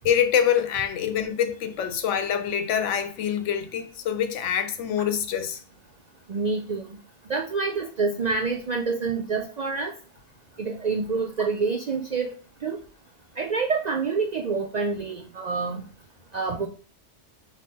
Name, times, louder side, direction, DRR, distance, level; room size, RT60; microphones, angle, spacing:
voice 1, 0.0-5.6, left 9 dB, 85° left, 1.0 m, -25 dB
voice 2, 6.3-7.0 7.3-9.9 10.6-12.3 12.6-12.8 13.4-15.8 16.3-16.7, right 4 dB, 60° right, 0.4 m, -27 dB
5.3 x 3.2 x 2.8 m
omnidirectional pair, 1.2 m